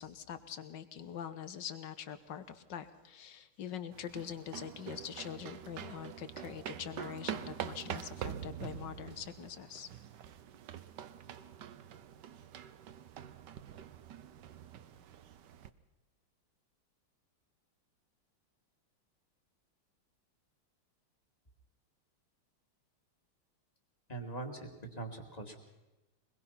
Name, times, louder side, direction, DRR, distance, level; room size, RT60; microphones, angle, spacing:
voice 1, 0.0-9.9, left 9 dB, 60° left, 12 dB, 1.7 m, -44 dB
sound 1, 3.9-15.7, right 9 dB, 60° right, 1.3 m, -45 dB
voice 2, 24.1-25.6, right 3 dB, 20° left, 3 dB, 2.4 m, -42 dB
23.5 x 21.0 x 5.8 m, 1.1 s
omnidirectional pair, 2.4 m